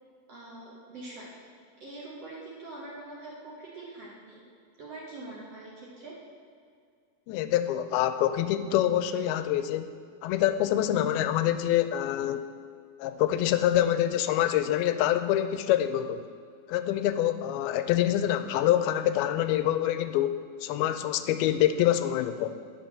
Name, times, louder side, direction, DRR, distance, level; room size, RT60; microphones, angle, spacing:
voice 1, 0.3-1.3 1.8-4.4 4.8-6.1, right 2 dB, 60° right, -4 dB, 1.8 m, -43 dB
voice 2, 7.3-9.9 10.2-12.5 13.0-16.2 16.7-22.6, left 12 dB, 90° left, 10 dB, 2.5 m, -26 dB
9.6 x 6.3 x 6.6 m, 2.3 s
omnidirectional pair, 4.3 m